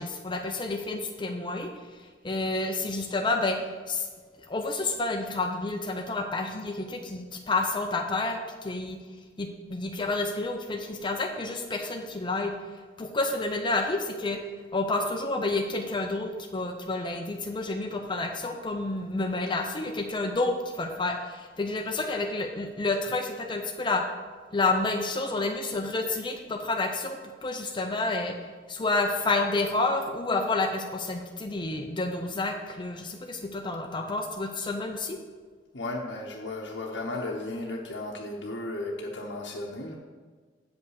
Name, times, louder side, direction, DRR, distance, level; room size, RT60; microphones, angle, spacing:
voice 1, 0.0-4.1 4.4-9.0 9.4-12.5 13.0-14.4 14.7-24.0 24.5-28.4 28.7-35.2, left 2 dB, 25° left, 4 dB, 0.6 m, -29 dB
voice 2, 35.7-39.9, left 2 dB, 70° left, -3 dB, 0.9 m, -35 dB
8.0 x 5.5 x 6.4 m, 1.5 s
head